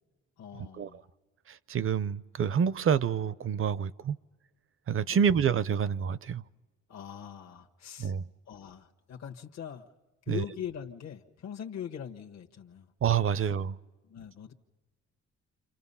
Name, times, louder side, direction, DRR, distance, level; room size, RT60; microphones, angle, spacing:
voice 1, 0.4-1.1 5.1-5.3 6.9-8.1 8.5-9.9 10.3-12.9 13.4-13.5 14.0-14.5, left 8 dB, 60° left, 1.4 m, -42 dB
voice 2, 1.5-4.2 4.9-6.4 8.0-8.2 10.3-10.4 13.0-13.8, right 7 dB, 45° right, 0.7 m, -27 dB
30.0 x 27.0 x 5.6 m
cardioid pair, 90°, 30 cm